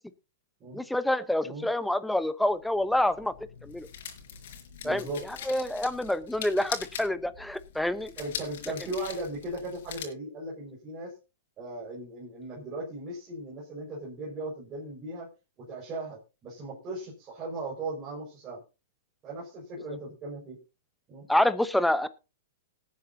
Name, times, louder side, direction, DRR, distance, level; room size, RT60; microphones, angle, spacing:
voice 1, 0.7-3.3 3.6-3.9 4.8-5.0 5.5-8.1 21.3-22.1, left 1 dB, ahead, 13 dB, 0.9 m, -27 dB
sound 1, 2.5-10.1, left 8 dB, 65° left, 4.7 m, -42 dB
voice 2, 4.8-5.2 8.2-11.1 11.6-15.3 15.6-18.6 19.2-20.6 21.1-21.3, right 2 dB, 25° right, -4 dB, 5.1 m, -37 dB
19.5 x 9.4 x 2.7 m, 0.29 s
hypercardioid pair, 145°, 0 cm